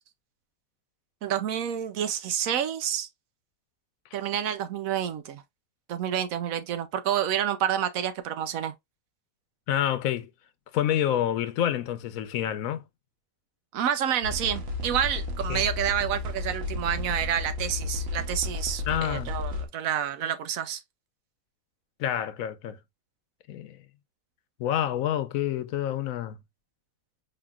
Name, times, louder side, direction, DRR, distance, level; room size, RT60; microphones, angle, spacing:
voice 1, 1.2-3.1 4.1-5.4 5.9-8.7 13.7-20.8, right 9 dB, 80° right, 1.1 m, -29 dB
voice 2, 9.7-10.3 10.7-12.8 15.5-15.6 18.9-19.4 22.0-22.8 23.5-23.8 24.6-26.4, left 11 dB, 80° left, 1.0 m, -28 dB
sound 1, 14.2-19.7, left 3 dB, 55° right, 1.0 m, -33 dB
4.8 x 3.1 x 2.3 m
omnidirectional pair, 1.4 m